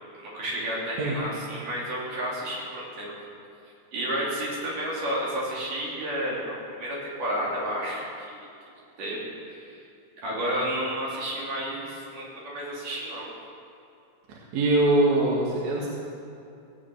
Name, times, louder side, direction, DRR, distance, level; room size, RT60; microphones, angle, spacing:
voice 1, 0.2-3.1 3.9-8.5 9.0-9.7 10.2-13.3, equal, 85° right, -5 dB, 4.8 m, -31 dB
voice 2, 14.3-15.9, right 2 dB, 70° right, -4 dB, 3.0 m, -23 dB
17.0 x 8.5 x 7.7 m, 2.6 s
omnidirectional pair, 3.6 m